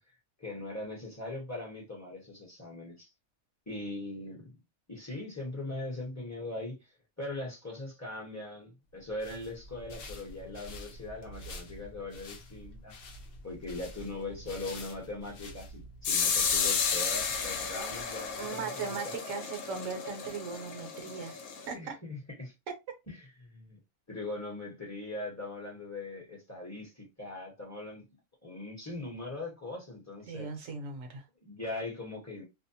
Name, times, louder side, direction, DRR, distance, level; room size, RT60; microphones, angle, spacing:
voice 1, 0.4-3.1 3.7-4.5 4.9-6.8 7.2-13.1 13.4-19.1 21.7-22.5 23.1-23.8 24.1-28.1 28.4-30.5 31.4-32.4, left 2 dB, 15° left, 0.8 m, -40 dB
sound 1, 9.0-18.5, left 1 dB, 55° left, 0.7 m, -48 dB
sound 2, 16.0-21.7, left 6 dB, 75° left, 1.1 m, -32 dB
voice 2, 18.4-21.4 21.7-22.0 30.3-31.2, right 5 dB, 65° right, 1.0 m, -38 dB
2.7 x 2.1 x 2.7 m
omnidirectional pair, 1.5 m